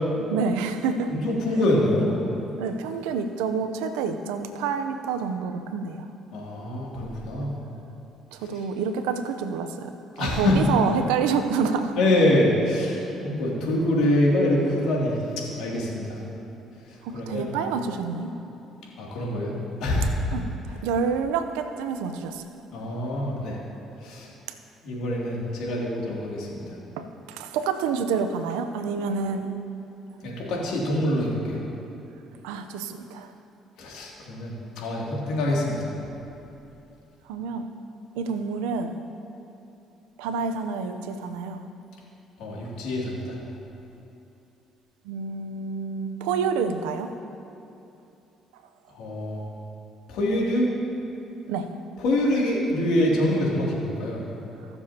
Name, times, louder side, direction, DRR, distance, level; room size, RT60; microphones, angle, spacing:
voice 1, 0.2-1.1 2.6-6.1 8.3-9.9 10.2-11.9 17.0-18.3 20.3-22.5 27.0-29.5 32.4-33.3 37.3-37.7 38.2-38.9 40.2-41.6 45.0-47.1 51.5-51.7, right 5 dB, 90° right, 8 dB, 0.6 m, -28 dB
voice 2, 1.1-2.1 6.3-7.6 10.2-10.7 12.0-16.2 16.9-17.5 19.0-19.5 19.8-20.2 22.7-23.6 24.0-24.3 24.8-26.7 30.2-31.6 33.8-35.9 42.4-43.4 48.9-49.4 50.1-50.7 52.0-54.2, left 1 dB, 80° left, -4 dB, 2.6 m, -25 dB
21.0 x 7.1 x 2.9 m, 2.8 s
supercardioid pair, 65°, 0 cm